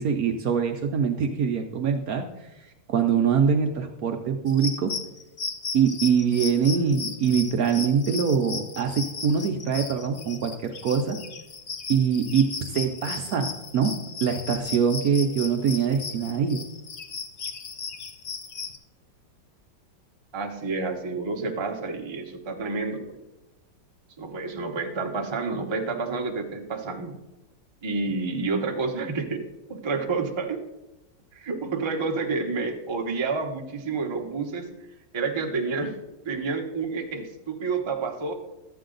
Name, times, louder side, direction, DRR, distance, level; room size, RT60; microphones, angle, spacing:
voice 1, 0.0-4.9 5.7-11.2 11.9-13.9 14.2-16.6, right 6 dB, 65° right, 5 dB, 1.0 m, -24 dB
sound 1, 4.5-18.8, left 5 dB, 80° left, 0.5 m, -36 dB
voice 2, 20.3-23.2 24.2-27.1 27.8-29.4 29.7-30.6 31.3-34.7 35.1-36.0 36.2-38.3, right 4 dB, 25° right, 2 dB, 0.6 m, -29 dB
12.5 x 8.2 x 3.8 m, 0.99 s
omnidirectional pair, 2.0 m